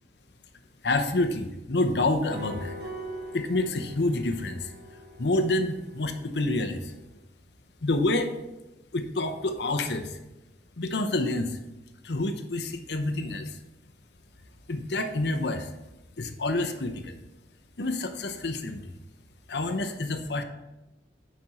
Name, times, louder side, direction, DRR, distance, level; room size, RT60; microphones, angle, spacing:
voice 1, 0.8-2.7 3.3-4.7 5.2-6.9 7.8-8.3 8.9-10.2 10.8-11.6 12.0-13.6 14.7-15.7 16.2-17.2 17.8-18.8 19.5-20.4, left 2 dB, 75° left, 7 dB, 0.8 m, -28 dB
sound 1, 2.3-7.0, right 1 dB, 75° right, 2.1 m, -42 dB
8.7 x 5.2 x 4.2 m, 0.98 s
head